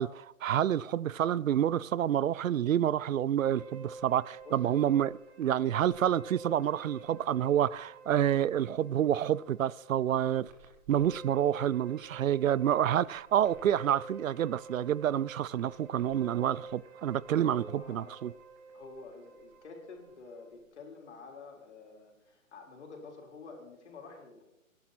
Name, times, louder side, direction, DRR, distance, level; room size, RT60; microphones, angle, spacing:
voice 1, 0.0-10.5 10.9-18.3, right 10 dB, 70° right, 0.5 m, -28 dB
sound 1, 3.5-20.6, right 3 dB, 10° right, 0.8 m, -49 dB
voice 2, 4.4-4.8 5.6-5.9 17.3-18.2 18.7-24.4, left 4 dB, 55° left, 4.3 m, -49 dB
20.0 x 11.0 x 4.2 m
hypercardioid pair, 160°, 41 cm